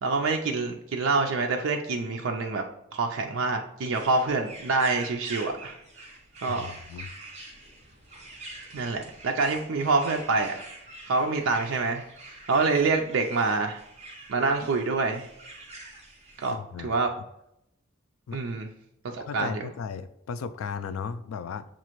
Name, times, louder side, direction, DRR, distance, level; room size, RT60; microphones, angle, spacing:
voice 1, 0.0-2.6 2.9-5.7 6.4-6.7 8.7-10.6 11.1-12.0 12.5-13.8 14.3-15.3 16.4-16.5 16.8-17.1 18.3-18.7 19.0-19.7, right 3 dB, 70° right, 0.4 m, -26 dB
sound 1, 3.9-16.5, right 2 dB, 30° right, 0.9 m, -45 dB
voice 2, 6.5-7.1 16.5-17.0 18.3-18.4 19.3-21.7, left 6 dB, 80° left, 0.3 m, -36 dB
7.1 x 2.5 x 3.0 m
head